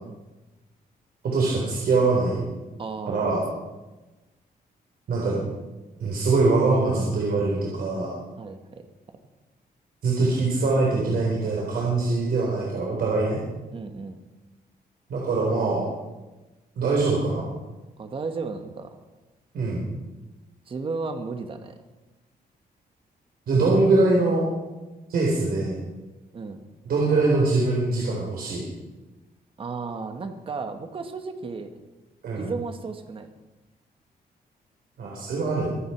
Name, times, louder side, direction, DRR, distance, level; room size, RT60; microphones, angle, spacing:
voice 1, 1.2-2.4 3.1-3.5 5.1-5.4 6.0-8.1 10.0-13.4 15.1-15.8 16.8-17.5 19.5-19.8 23.5-24.5 25.1-25.8 26.8-28.6 32.2-32.5 35.0-35.7, right 3 dB, 65° right, -3 dB, 4.3 m, -23 dB
voice 2, 2.8-3.4 8.4-8.9 13.7-14.2 18.0-19.0 20.7-21.7 26.3-26.6 29.6-31.8 32.3-33.3, right 4 dB, 35° right, 7 dB, 1.4 m, -34 dB
24.5 x 9.3 x 5.9 m, 1.1 s
wide cardioid pair, 155°, 16 cm